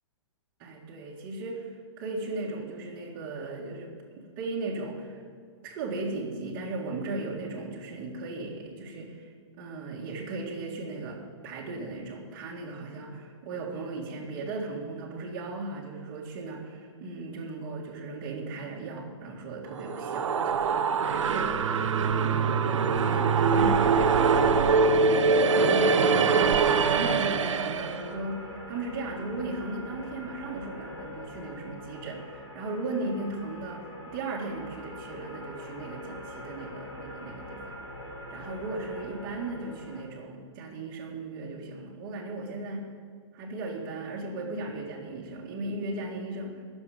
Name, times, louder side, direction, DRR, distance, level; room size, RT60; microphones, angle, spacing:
voice 1, 0.6-5.2 5.6-21.8 22.1-24.7 25.1-37.8 38.3-42.9 43.3-46.6, right 2 dB, 25° right, -5 dB, 2.0 m, -37 dB
sound 1, 19.7-28.1, right 5 dB, 85° right, 1.0 m, -23 dB
sound 2, 23.3-40.0, left 1 dB, 20° left, 3.6 m, -44 dB
21.5 x 7.2 x 5.2 m, 2.1 s
hypercardioid pair, 165°, 16 cm